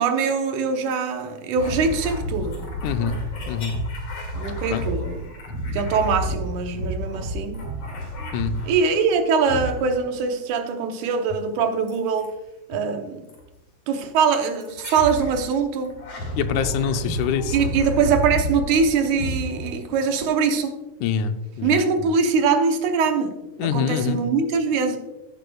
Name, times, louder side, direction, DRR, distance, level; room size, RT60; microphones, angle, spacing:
voice 1, 0.0-2.6 4.3-5.2 5.7-7.6 8.6-12.3 12.7-13.2 13.9-16.0 17.5-20.8 21.6-25.0, right 5 dB, 80° right, 5 dB, 2.4 m, -22 dB
sound 1, 1.6-9.0 9.4-10.2 11.9-12.3 13.3-13.5 14.6-15.4 15.8-20.2, equal, 55° left, 3.2 m, -30 dB
voice 2, 2.8-3.2 3.5-3.8 4.7-4.8 8.3-8.6 16.4-17.6 21.0-22.1 23.6-24.2, left 7 dB, 90° left, 9 dB, 2.1 m, -25 dB
15.5 x 7.8 x 2.3 m, 1.0 s
omnidirectional pair, 3.4 m